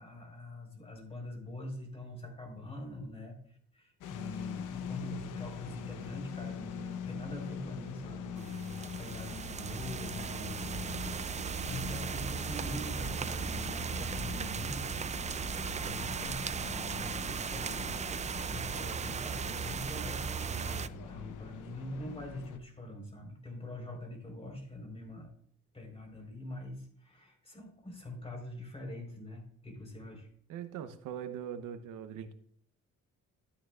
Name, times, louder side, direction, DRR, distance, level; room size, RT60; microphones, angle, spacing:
voice 1, 0.0-15.1 15.7-25.3 25.7-30.3, left 1 dB, 20° left, 2 dB, 4.2 m, -44 dB
sound 1, 4.0-22.6, left 8 dB, 85° left, 0.9 m, -44 dB
sound 2, 8.4-20.9, right 6 dB, 25° right, 0.4 m, -37 dB
voice 2, 30.5-32.3, right 9 dB, 90° right, 10 dB, 0.9 m, -41 dB
13.0 x 9.0 x 2.4 m, 0.63 s
cardioid pair, 90°, 30 cm